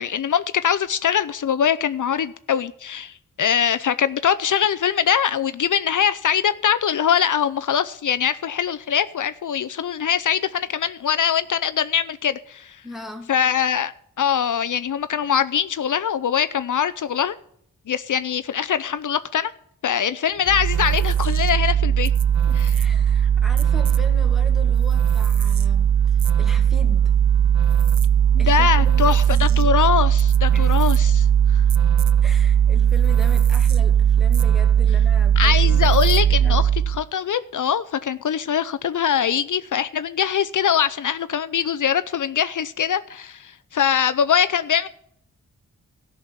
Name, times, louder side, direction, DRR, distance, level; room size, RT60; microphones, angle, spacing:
voice 1, 0.0-12.8 13.3-13.9 14.2-17.4 17.9-19.5 19.8-22.1 22.6-22.7 28.3-31.6 35.4-44.9, left 8 dB, 70° left, 0.7 m, -22 dB
voice 2, 12.8-13.3 22.5-27.1 28.4-29.7 30.5-30.8 32.2-35.9 36.4-36.7, left 1 dB, ahead, 2.5 m, -39 dB
sound 1, 20.5-37.0, right 9 dB, 60° right, 0.7 m, -18 dB
13.5 x 6.3 x 9.7 m
cardioid pair, 50°, 31 cm